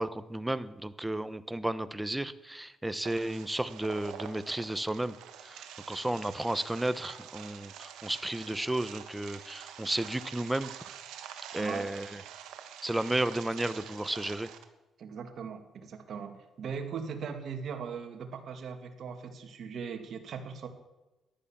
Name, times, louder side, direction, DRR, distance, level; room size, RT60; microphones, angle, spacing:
voice 1, 0.0-5.1 5.5-10.7 11.5-12.1 12.8-14.5, right 1 dB, 10° right, 14 dB, 0.8 m, -33 dB
sound 1, 3.0-14.6, right 9 dB, 90° right, 1.3 m, -47 dB
voice 2, 11.6-11.9 15.0-20.7, right 6 dB, 60° right, 5 dB, 2.1 m, -39 dB
13.5 x 11.0 x 7.2 m, 1.1 s
cardioid pair, 90°, 0 cm